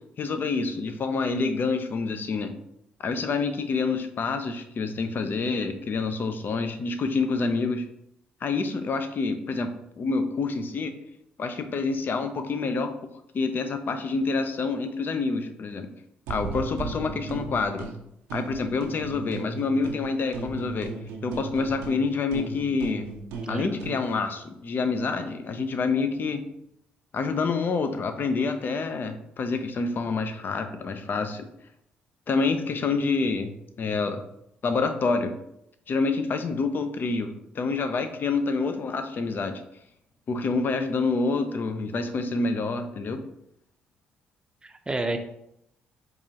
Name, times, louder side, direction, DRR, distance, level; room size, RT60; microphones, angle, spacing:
voice 1, 0.2-2.5 3.0-7.8 8.4-9.7 10.0-10.9 11.4-12.9 13.3-15.9 16.3-17.9 18.3-20.9 21.2-23.1 23.5-26.4 27.1-31.5 32.3-34.2 34.6-35.3 35.9-39.6 40.3-43.2, left 4 dB, 50° left, 8 dB, 0.5 m, -27 dB
sound 1, 16.3-17.9 18.3-20.1 20.3-24.0, right 4 dB, 80° right, 0.6 m, -36 dB
voice 2, 23.4-23.8 44.6-45.2, right 2 dB, 20° right, 7 dB, 0.6 m, -30 dB
4.7 x 2.5 x 2.8 m, 0.78 s
hypercardioid pair, 55°, 4 cm